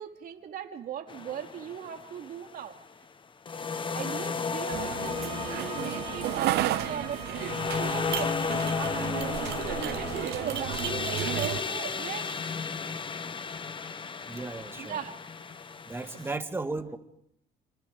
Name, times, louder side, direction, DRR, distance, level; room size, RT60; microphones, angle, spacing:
voice 1, 0.0-2.7 3.9-8.4 9.7-12.4 14.8-15.2, right 8 dB, 60° right, 4 dB, 3.0 m, -39 dB
sound 1, 1.1-2.5 3.5-16.4, left 5 dB, 30° left, 1.2 m, -34 dB
sound 2, 4.7-11.6, right 14 dB, 80° right, 1.0 m, -33 dB
sound 3, 4.9-10.2, right 5 dB, 30° right, 7.8 m, -45 dB
voice 2, 8.7-9.2 14.3-15.0 15.9-17.0, right 3 dB, 15° right, 7 dB, 2.0 m, -36 dB
29.0 x 27.0 x 5.0 m, 0.74 s
cardioid pair, 110°, 17 cm